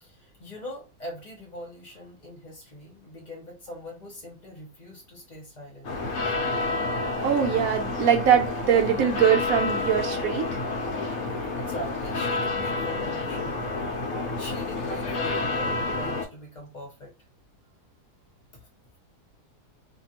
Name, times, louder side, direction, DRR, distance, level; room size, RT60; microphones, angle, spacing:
voice 1, 0.0-6.0 6.2-6.3 11.6-13.7 14.0-17.1 18.5-18.6, left 1 dB, 30° left, 1.1 m, -42 dB
sound 1, 5.8-16.2, left 3 dB, 60° left, 1.1 m, -29 dB
voice 2, 7.2-10.6, right 8 dB, 70° right, 0.9 m, -22 dB
2.7 x 2.6 x 2.8 m
omnidirectional pair, 1.8 m